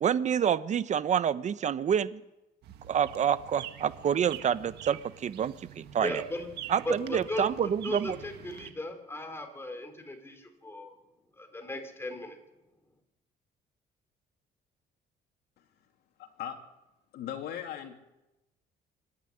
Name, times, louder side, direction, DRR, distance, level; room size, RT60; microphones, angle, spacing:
voice 1, 0.0-2.2 2.9-6.2 6.7-8.2, right 8 dB, 45° right, 14 dB, 0.9 m, -28 dB
sound 1, 2.6-8.7, right 11 dB, 75° right, 1.6 m, -46 dB
voice 2, 6.0-6.5 6.8-7.4 7.8-11.0 11.4-12.4, left 1 dB, 15° left, 5 dB, 4.1 m, -37 dB
voice 3, 16.2-16.6 17.1-17.9, left 10 dB, 75° left, 3 dB, 3.2 m, -38 dB
25.5 x 11.5 x 10.0 m, 0.96 s
cardioid pair, 110°, 17 cm